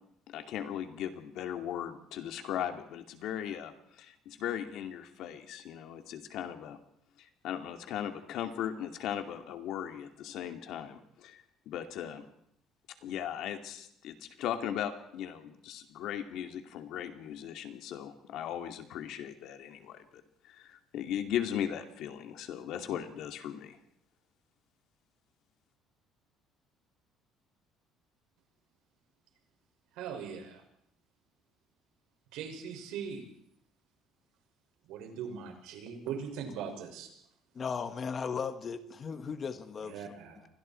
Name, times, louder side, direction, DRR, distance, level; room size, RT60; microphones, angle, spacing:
voice 1, 0.3-6.8 7.4-11.4 11.7-12.2 13.0-20.0 20.5-23.8, left 10 dB, 60° left, 6 dB, 2.5 m, -38 dB
voice 2, 29.9-30.6 32.3-33.2 34.8-37.1 39.8-40.5, right 7 dB, 75° right, 3 dB, 6.3 m, -40 dB
voice 3, 37.5-39.9, left 6 dB, 25° left, 10 dB, 1.3 m, -36 dB
29.5 x 24.5 x 4.6 m, 0.70 s
cardioid pair, 165°, 0 cm